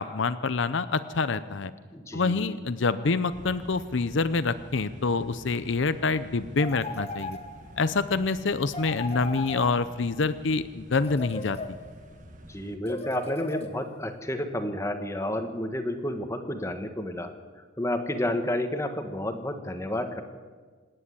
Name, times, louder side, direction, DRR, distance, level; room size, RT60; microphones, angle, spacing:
voice 1, 0.0-1.7 2.1-7.4 7.8-11.6, left 4 dB, 65° left, 13 dB, 0.6 m, -26 dB
voice 2, 1.9-2.5 12.5-17.3 17.8-20.2, left 1 dB, 15° left, 7 dB, 1.3 m, -31 dB
sound 1, 3.3-12.8, equal, 40° right, 1.7 m, -48 dB
sound 2, 6.6-7.8 8.7-10.2 10.9-12.1 12.9-14.1, left 2 dB, 30° left, 1.4 m, -37 dB
26.5 x 10.0 x 9.9 m, 1.5 s
head